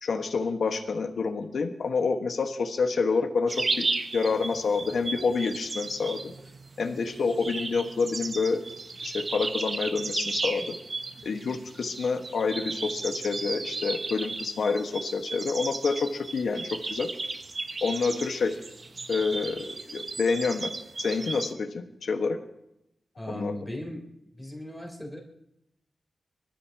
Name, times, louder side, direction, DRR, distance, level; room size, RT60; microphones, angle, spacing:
voice 1, 0.0-3.9 4.1-6.3 6.8-8.6 9.0-10.7 11.2-17.1 17.8-18.6 19.1-20.7 21.0-22.4 23.3-23.5, left 4 dB, 80° left, 5 dB, 1.5 m, -28 dB
sound 1, 3.5-21.5, right 3 dB, 45° right, 0.9 m, -35 dB
voice 2, 23.2-24.0 24.3-25.2, left 1 dB, 5° left, -1 dB, 3.8 m, -37 dB
25.5 x 14.0 x 3.0 m, 0.83 s
wide cardioid pair, 100°, 0 cm